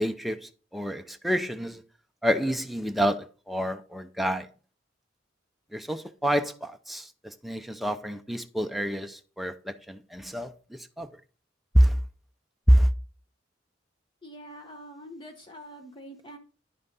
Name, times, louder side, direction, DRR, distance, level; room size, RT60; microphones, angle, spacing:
voice 1, 0.0-1.8 2.2-4.5 5.7-11.1 11.7-12.0 12.7-12.9, equal, ahead, 0.5 m, -27 dB
voice 2, 14.2-16.4, equal, 25° left, 0.9 m, -45 dB
10.0 x 5.6 x 4.0 m
head